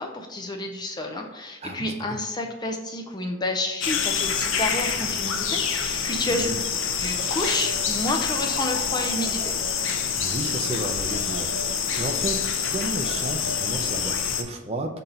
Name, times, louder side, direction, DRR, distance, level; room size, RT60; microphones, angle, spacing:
voice 1, 0.0-6.6 7.0-9.5, left 1 dB, 20° left, 3 dB, 0.5 m, -30 dB
voice 2, 1.6-2.2 6.2-6.6 10.2-12.4 12.7-15.0, right 2 dB, 30° right, 4 dB, 0.5 m, -33 dB
sound 1, 3.8-14.4, left 7 dB, 60° left, 0.6 m, -26 dB
4.4 x 4.0 x 5.3 m, 1.2 s
head